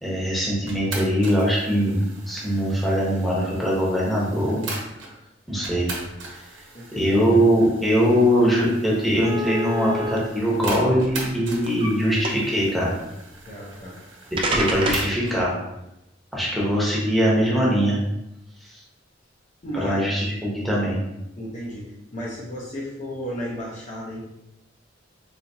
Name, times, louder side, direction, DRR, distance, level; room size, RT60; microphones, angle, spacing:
voice 1, 0.0-4.6 5.5-5.9 6.9-13.0 14.5-15.5 16.3-18.0 19.8-21.0, equal, ahead, -6 dB, 0.9 m, -21 dB
sound 1, 0.7-5.1 5.6-15.4, right 3 dB, 85° right, 1.0 m, -39 dB
voice 2, 6.7-7.1 13.5-14.0 19.6-20.0 21.4-24.2, equal, 40° left, -4 dB, 0.7 m, -33 dB
sound 2, 9.2-10.2 11.0-11.9 12.2-12.6 13.7-13.8 14.4-15.1, right 1 dB, 30° right, 0.4 m, -27 dB
4.0 x 2.8 x 2.7 m, 0.87 s
head